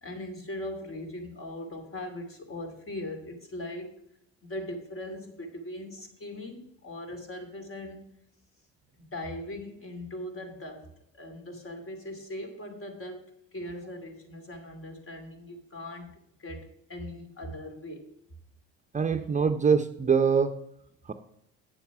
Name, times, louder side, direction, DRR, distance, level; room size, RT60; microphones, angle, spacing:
voice 1, 0.0-3.9 4.4-8.1 9.0-18.1, left 1 dB, 40° left, 4 dB, 2.6 m, -40 dB
voice 2, 18.9-20.6 21.0-21.1, right 6 dB, 25° right, 8 dB, 0.7 m, -24 dB
8.7 x 7.1 x 5.8 m, 0.73 s
supercardioid pair, 80°, 32 cm